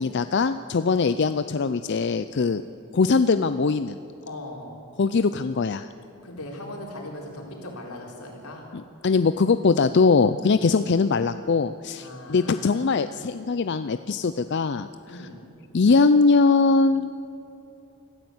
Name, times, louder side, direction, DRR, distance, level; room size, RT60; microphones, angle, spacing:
voice 1, 0.0-2.6 2.9-4.0 5.0-5.9 9.0-14.9 15.7-17.1, left 4 dB, 50° left, 11 dB, 0.4 m, -21 dB
voice 2, 4.2-4.7 6.2-8.7 10.5-10.7 12.0-13.0 15.1-15.4, left 1 dB, 85° left, 0 dB, 4.3 m, -39 dB
25.0 x 15.0 x 8.0 m, 2.9 s
head